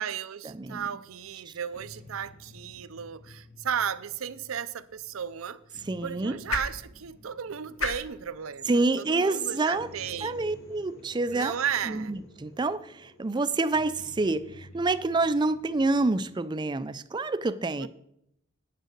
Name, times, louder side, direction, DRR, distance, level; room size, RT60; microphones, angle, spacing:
voice 1, 0.0-10.4 11.3-12.1 17.8-17.9, right 8 dB, 75° right, 0.5 m, -34 dB
sound 1, 0.8-16.4, left 1 dB, 45° left, 2.7 m, -53 dB
sound 2, 4.7-10.9, left 3 dB, 80° left, 1.3 m, -40 dB
voice 2, 5.9-6.4 8.7-9.9 10.2-11.5 11.9-17.9, right 3 dB, 20° right, 0.4 m, -27 dB
sound 3, 8.5-16.1, left 2 dB, 65° left, 1.2 m, -53 dB
8.9 x 6.4 x 6.6 m
head